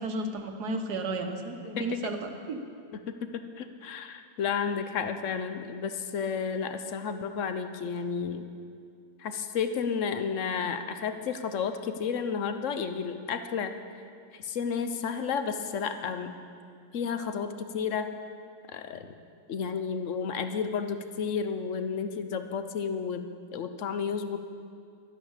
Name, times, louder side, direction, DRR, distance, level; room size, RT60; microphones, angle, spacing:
voice 1, 0.0-2.6, right 2 dB, 80° right, 5 dB, 1.7 m, -33 dB
voice 2, 1.7-2.1 2.9-3.3 3.6-8.4 9.2-13.7 14.3-16.4 16.9-18.1 18.7-19.1 19.5-24.4, left 6 dB, 60° left, 9 dB, 1.0 m, -32 dB
12.0 x 10.5 x 7.2 m, 2.3 s
omnidirectional pair, 1.7 m